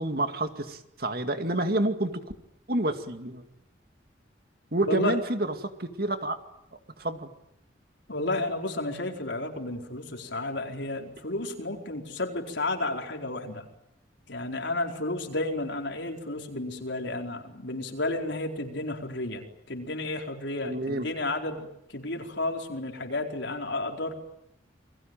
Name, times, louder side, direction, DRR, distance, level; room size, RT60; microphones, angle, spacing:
voice 1, 0.0-2.2 2.7-3.4 4.7-6.4 7.0-7.3 20.6-21.1, right 1 dB, 50° right, 7 dB, 2.3 m, -28 dB
voice 2, 4.9-5.2 8.1-13.7 14.3-24.1, left 2 dB, 75° left, 2 dB, 4.6 m, -32 dB
29.0 x 22.5 x 9.2 m, 0.78 s
head